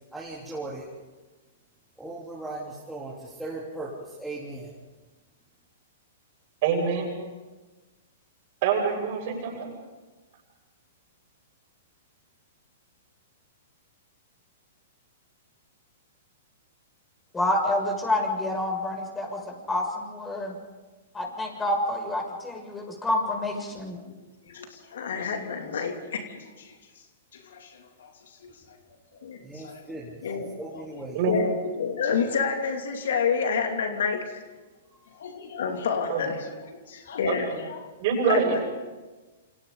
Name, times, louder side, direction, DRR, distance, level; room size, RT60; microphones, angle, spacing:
voice 1, 0.1-0.9 2.0-4.7 29.4-31.2 35.0-35.1, right 2 dB, 5° right, -8 dB, 3.7 m, -38 dB
voice 2, 6.6-7.1 8.6-9.7 31.1-31.4 36.1-36.2 37.3-37.5 38.0-38.6, right 6 dB, 50° right, 1 dB, 6.9 m, -25 dB
voice 3, 17.3-20.5 21.1-24.0, left 1 dB, 15° left, 0 dB, 6.9 m, -28 dB
voice 4, 24.5-26.7 27.3-27.7 28.0-28.1 28.4-28.5 29.2-29.8 30.2-30.8 31.3-34.2 35.2-36.5 36.9-37.9 38.2-38.6, left 6 dB, 70° left, 4 dB, 2.8 m, -29 dB
28.0 x 27.5 x 4.0 m, 1.2 s
hypercardioid pair, 115°, 0 cm